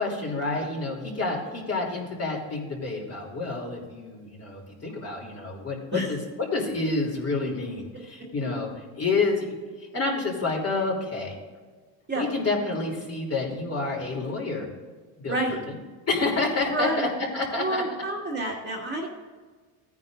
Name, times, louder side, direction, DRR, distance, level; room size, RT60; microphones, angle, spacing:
voice 1, 0.0-6.2 6.5-8.7 9.0-9.4 9.9-11.4 12.1-14.7 15.2-15.8 16.1-17.1 17.3-17.8, left 3 dB, 30° left, -1 dB, 3.3 m, -28 dB
voice 2, 15.3-15.6 16.7-17.1 17.6-19.1, right 1 dB, 20° right, -2 dB, 2.1 m, -28 dB
16.5 x 9.5 x 2.6 m, 1.4 s
cardioid pair, 120°, 49 cm